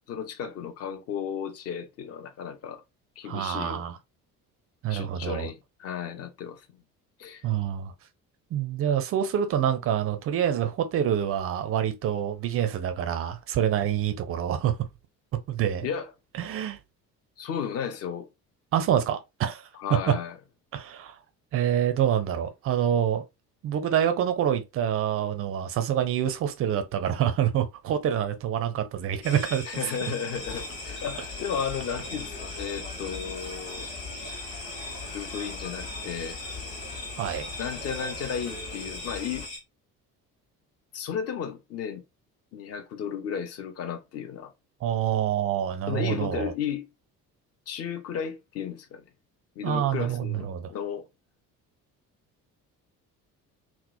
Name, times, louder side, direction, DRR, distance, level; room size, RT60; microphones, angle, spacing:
voice 1, 0.1-2.8 3.2-3.8 4.9-6.7 7.2-7.5 15.8-16.1 17.4-18.3 19.7-20.3 29.7-33.9 35.1-36.4 37.6-39.5 40.9-42.0 42.5-44.5 45.9-46.9 47.7-49.0 49.6-51.0, left 7 dB, 35° left, 0.5 m, -34 dB
voice 2, 3.2-4.0 4.8-5.5 7.4-7.9 8.5-14.8 15.5-15.9 16.4-16.8 18.7-20.1 20.7-21.2 21.5-23.2 23.6-29.8 37.2-37.5 44.8-46.5 49.6-50.7, right 9 dB, 30° right, 0.4 m, -26 dB
sound 1, 29.2-39.6, left 2 dB, 75° left, 0.8 m, -39 dB
sound 2, 30.3-39.5, left 4 dB, 50° left, 1.1 m, -42 dB
2.8 x 2.0 x 2.2 m
figure-of-eight pair, 50°, 46 cm